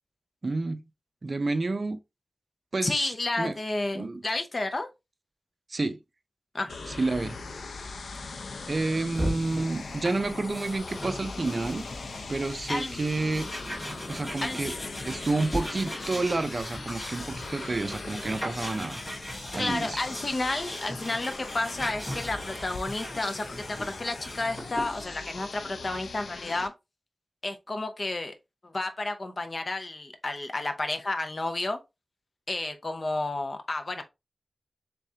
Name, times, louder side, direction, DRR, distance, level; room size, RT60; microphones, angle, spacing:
voice 1, 0.4-0.8 1.2-2.0 2.7-3.6 3.9-4.2 5.7-6.0 6.9-7.4 8.7-11.8 12.3-13.5 14.1-14.7 15.0-19.0 19.5-20.0, right 3 dB, 45° right, 0.5 m, -29 dB
voice 2, 2.8-4.9 6.5-6.8 12.7-13.0 14.4-14.7 19.6-26.7 27.4-28.3 28.6-31.8 32.5-34.0, left 2 dB, 45° left, 0.6 m, -31 dB
sound 1, 6.7-26.7, left 4 dB, 90° left, 0.4 m, -40 dB
sound 2, 9.1-25.0, equal, 15° left, 2.5 m, -39 dB
3.7 x 3.5 x 2.7 m
wide cardioid pair, 100°, 0 cm